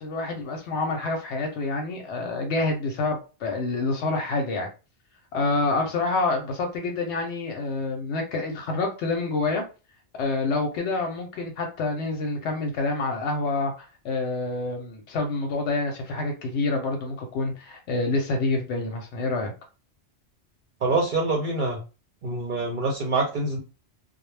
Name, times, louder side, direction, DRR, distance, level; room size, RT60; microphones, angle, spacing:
voice 1, 0.0-4.7 5.3-9.6 10.1-13.7 14.0-19.5, left 3 dB, 85° left, 2 dB, 0.9 m, -27 dB
voice 2, 20.8-21.8 22.2-23.6, right 3 dB, 55° right, -1 dB, 0.6 m, -25 dB
2.1 x 2.0 x 3.1 m, 0.32 s
omnidirectional pair, 1.1 m